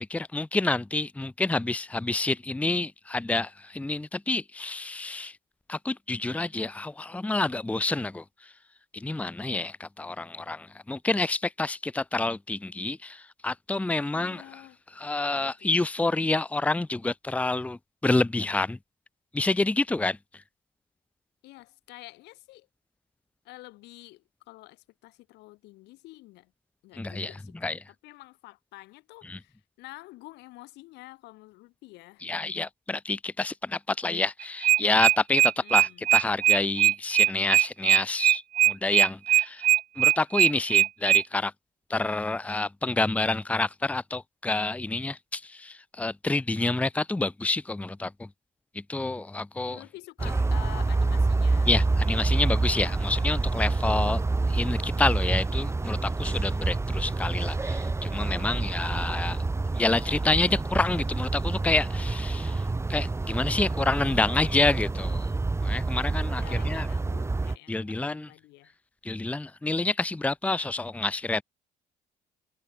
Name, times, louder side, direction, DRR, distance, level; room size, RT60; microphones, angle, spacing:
voice 1, 0.0-5.3 5.7-8.2 8.9-14.4 15.0-18.8 19.3-20.2 27.0-27.3 27.6-27.8 29.3-29.4 32.2-39.7 40.0-41.5 41.9-48.3 48.9-49.8 51.7-54.2 54.5-59.4 59.8-62.6 62.9-65.3 65.6-66.9 67.7-68.3 69.0-71.4, left 2 dB, 10° left, 0.8 m, -28 dB
voice 2, 14.1-14.8 15.3-15.8 21.4-22.7 23.4-26.5 26.8-27.7 28.0-32.2 35.6-36.1 49.7-52.6 66.3-68.7, left 20 dB, 90° left, 4.5 m, -48 dB
sound 1, 34.4-41.2, right 13 dB, 50° right, 0.4 m, -20 dB
sound 2, 50.2-67.6, right 3 dB, 15° right, 2.0 m, -27 dB
cardioid pair, 110°, 17 cm